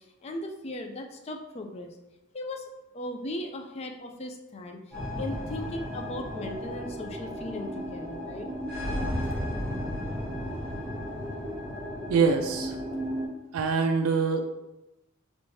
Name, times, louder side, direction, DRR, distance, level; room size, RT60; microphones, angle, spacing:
voice 1, 0.0-2.0 2.3-2.6 2.9-8.5, left 1 dB, 30° left, 3 dB, 0.3 m, -37 dB
sound 1, 4.9-13.3, equal, 5° left, 1.2 m, -34 dB
voice 2, 12.1-12.8 13.5-14.4, right 5 dB, 80° right, 5 dB, 0.3 m, -24 dB
3.2 x 3.1 x 2.7 m, 0.97 s
head